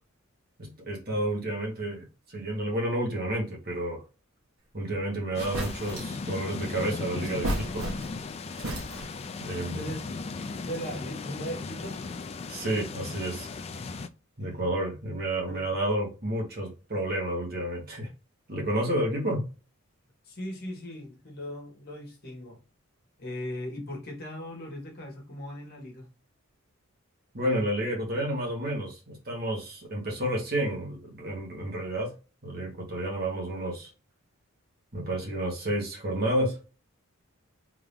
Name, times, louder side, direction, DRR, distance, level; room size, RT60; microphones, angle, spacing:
voice 1, 0.6-4.0 4.7-7.9 9.4-9.9 12.5-13.5 14.4-18.1 18.5-19.5 27.3-32.1 32.4-33.9 34.9-36.6, right 1 dB, 45° right, 1.6 m, -30 dB
sound 1, 4.9-5.0 5.4-6.2 7.2-8.3 8.6-9.3, right 1 dB, 80° right, 1.3 m, -33 dB
sound 2, 5.3-14.1, left 4 dB, 30° left, 0.3 m, -37 dB
voice 2, 9.7-10.0 10.6-12.0 14.4-14.6 15.4-15.8 20.2-22.6 23.2-26.1, equal, 45° left, 1.6 m, -38 dB
3.6 x 2.9 x 3.5 m
head